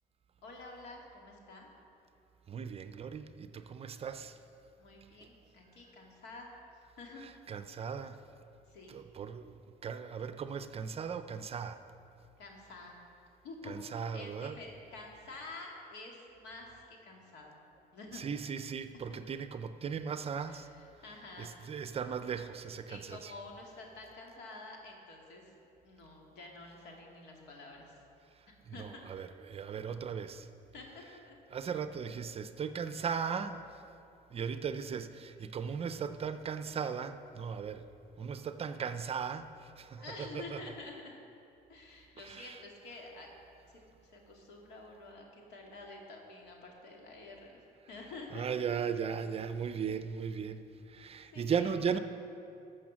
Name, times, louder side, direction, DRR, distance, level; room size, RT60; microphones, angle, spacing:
voice 1, 0.4-1.7 4.8-6.5 7.0-7.2 8.7-9.0 12.4-13.0 13.4-17.6 17.9-18.2 20.5-21.5 22.9-25.6 25.8-28.0 28.5-29.0 30.7-31.4 32.6-33.1 39.9-40.9 41.7-43.3 43.7-47.6 47.9-48.5 51.3-52.0, left 3 dB, 85° left, 0 dB, 2.2 m, -49 dB
voice 2, 2.5-4.4 7.5-8.2 8.9-11.8 13.7-14.6 18.1-20.7 21.4-23.3 28.8-30.5 31.5-33.7 34.3-37.8 38.2-40.0 40.3-40.6 42.2-42.6 48.3-52.0, right 6 dB, 35° right, 10 dB, 0.5 m, -37 dB
13.5 x 6.4 x 6.2 m, 2.7 s
cardioid pair, 110°, 17 cm